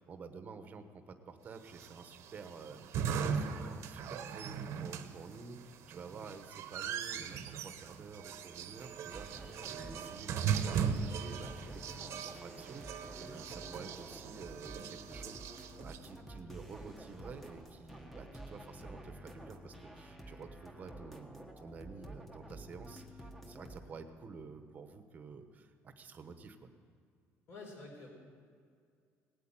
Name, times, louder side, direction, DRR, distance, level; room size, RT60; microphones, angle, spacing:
voice 1, 0.0-26.7, right 4 dB, 30° right, 7 dB, 1.1 m, -50 dB
sound 1, 1.7-16.0, right 7 dB, 55° right, 1.0 m, -39 dB
sound 2, 9.1-23.9, right 1 dB, ahead, 1.2 m, -50 dB
voice 2, 27.5-28.1, left 3 dB, 45° left, 0 dB, 4.2 m, -48 dB
18.0 x 8.6 x 8.9 m, 2.2 s
cardioid pair, 165°, 6 cm